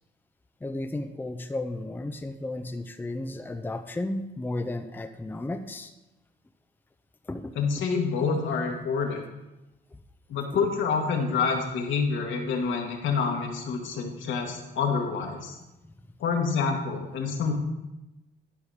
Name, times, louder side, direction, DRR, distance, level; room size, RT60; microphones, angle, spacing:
voice 1, 0.6-5.9 7.2-7.5 9.9-10.0, left 2 dB, 10° left, 7 dB, 0.6 m, -33 dB
voice 2, 7.6-9.2 10.3-15.5 16.2-17.5, left 5 dB, 75° left, 1 dB, 1.8 m, -27 dB
12.0 x 5.0 x 5.0 m, 1.0 s
cardioid pair, 90°, 20 cm